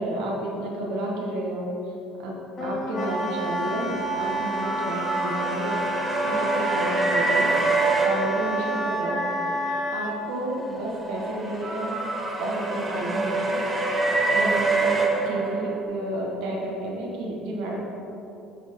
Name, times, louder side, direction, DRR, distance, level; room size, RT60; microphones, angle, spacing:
voice 1, 0.0-1.9 2.2-5.8 6.2-7.5 8.0-9.2 9.9-12.0 12.4-13.6 14.3-17.8, right 1 dB, 80° right, -3 dB, 1.4 m, -31 dB
Wind instrument woodwind instrument, 2.6-10.1, right 1 dB, 25° left, 1.0 m, -29 dB
sound 1, 3.5-9.1 10.5-15.8, right 3 dB, 20° right, 0.8 m, -26 dB
7.9 x 4.4 x 5.3 m, 2.9 s
cardioid pair, 150°, 0 cm